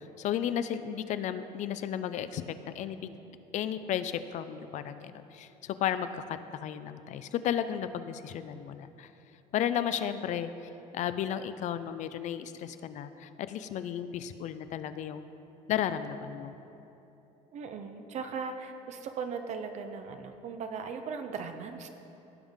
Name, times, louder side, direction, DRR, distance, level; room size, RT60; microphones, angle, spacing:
voice 1, 0.0-3.1 3.5-9.1 9.5-10.5 10.9-15.2 15.7-16.5, left 10 dB, 55° left, 12 dB, 0.5 m, -34 dB
voice 2, 17.5-21.9, right 5 dB, 50° right, 6 dB, 0.6 m, -38 dB
16.5 x 5.6 x 3.6 m, 2.9 s
cardioid pair, 125°, 15 cm